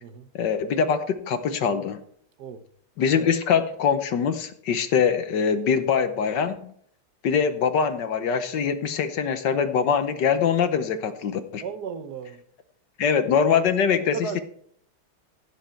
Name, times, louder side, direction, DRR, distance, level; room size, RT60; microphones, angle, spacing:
voice 1, 0.3-2.0 3.0-6.7 7.2-11.6 13.0-14.4, left 6 dB, 65° left, 1.4 m, -23 dB
voice 2, 11.6-12.4 14.1-14.4, right 6 dB, 60° right, 1.3 m, -35 dB
16.0 x 7.5 x 4.5 m
omnidirectional pair, 2.3 m